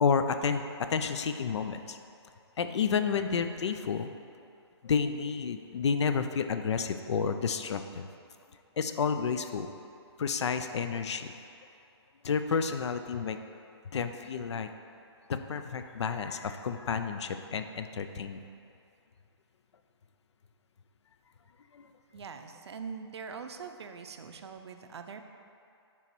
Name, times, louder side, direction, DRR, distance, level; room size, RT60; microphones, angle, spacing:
voice 1, 0.0-2.0 2.6-4.1 4.8-8.1 8.8-9.7 10.2-11.3 12.2-13.4 13.9-14.7 15.3-18.4 21.7-21.9, left 6 dB, 85° left, 8 dB, 0.4 m, -30 dB
voice 2, 22.1-25.2, right 6 dB, 75° right, 7 dB, 0.5 m, -43 dB
6.9 x 3.0 x 4.5 m, 2.6 s
hypercardioid pair, 160°, 14 cm